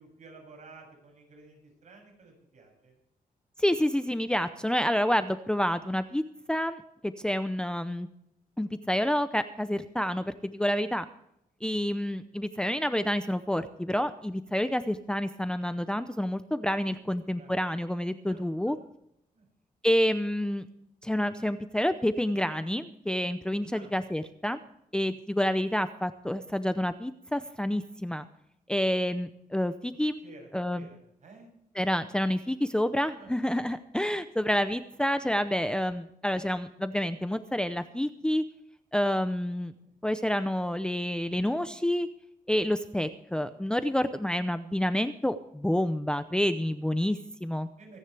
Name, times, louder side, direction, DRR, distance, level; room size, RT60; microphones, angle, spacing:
voice 1, 0.0-3.0 17.0-17.6 18.3-18.8 19.3-19.5 23.7-23.9 30.2-31.5 33.2-33.4 39.8-39.9 43.2-43.6 47.8-48.0, right 3 dB, 55° right, 1 dB, 7.3 m, -53 dB
voice 2, 3.6-6.2 6.5-8.1 8.6-11.0 11.6-18.8 19.8-20.7 21.0-24.6 24.9-28.3 28.7-30.2 30.5-30.8 31.8-38.4 38.9-39.7 40.0-42.1 42.5-47.7, left 1 dB, 5° left, 10 dB, 0.6 m, -28 dB
24.5 x 9.9 x 3.4 m, 0.78 s
cardioid pair, 115°, 15 cm